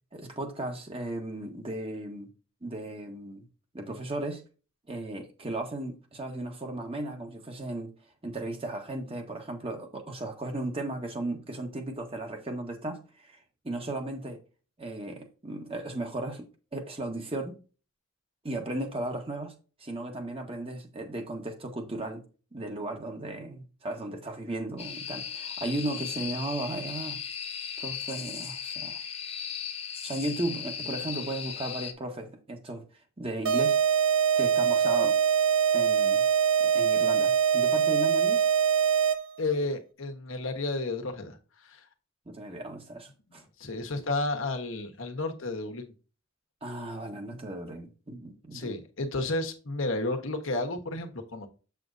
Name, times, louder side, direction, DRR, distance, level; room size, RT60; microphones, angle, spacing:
voice 1, 0.1-2.3 2.6-3.5 3.7-4.4 4.9-7.9 8.2-13.4 13.6-14.4 14.8-17.6 18.4-19.5 19.8-22.2 22.5-27.2 27.8-29.0 30.0-32.8 33.2-33.8 34.3-35.2 35.7-36.2 36.6-38.4 42.3-43.4 46.6-48.7, right 2 dB, 30° right, 1.4 m, -35 dB
sound 1, 24.8-31.9, left 8 dB, 30° left, 0.8 m, -37 dB
sound 2, 33.4-39.4, right 7 dB, 75° right, 0.9 m, -23 dB
voice 2, 39.4-41.4 41.6-41.8 43.3-45.9 48.5-51.5, left 2 dB, 80° left, 1.3 m, -32 dB
7.7 x 7.0 x 2.7 m
head